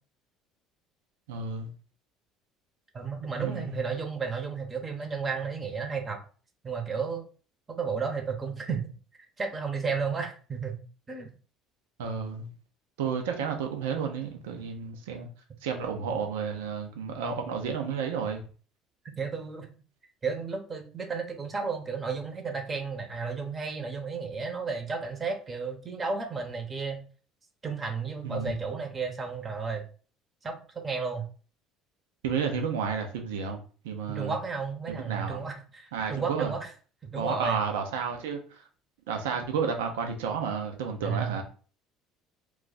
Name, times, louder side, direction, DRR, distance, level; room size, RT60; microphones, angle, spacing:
voice 1, 1.3-1.7 3.4-3.8 12.0-12.5 13.0-15.3 15.6-18.4 28.2-28.6 32.2-34.4 34.9-35.4 35.9-36.5 37.2-38.6 39.1-41.4, right 6 dB, 80° right, 0.5 m, -31 dB
voice 2, 2.9-6.2 6.6-7.2 7.7-8.9 9.4-10.8 11.1-11.3 19.2-19.7 20.2-27.0 27.6-29.8 30.4-31.3 34.1-36.7 37.0-37.6 41.0-41.4, right 5 dB, 30° right, 0.8 m, -33 dB
2.3 x 2.3 x 3.9 m
hypercardioid pair, 70°, 0 cm